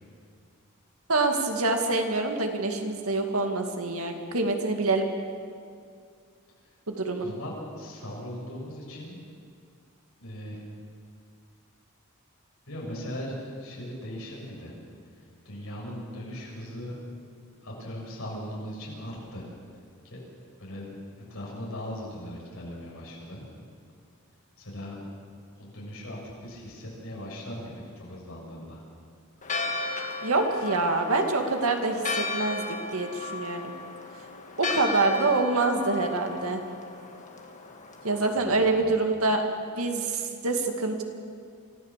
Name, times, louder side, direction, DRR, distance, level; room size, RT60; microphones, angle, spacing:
voice 1, 1.1-5.1 6.9-7.3 30.2-32.7 32.9-33.7 34.6-36.6 38.0-39.4 39.8-41.0, right 3 dB, 80° right, 4 dB, 2.2 m, -26 dB
voice 2, 7.2-9.2 10.2-10.6 12.7-14.7 15.4-17.0 17.6-19.5 20.0-20.2 20.6-20.9 21.3-23.5 24.6-25.0 25.5-28.8 38.4-38.9, equal, 70° left, -4 dB, 6.5 m, -39 dB
Church bell, 29.4-38.3, left 3 dB, 35° left, 1.9 m, -35 dB
25.0 x 14.5 x 7.5 m, 2.2 s
head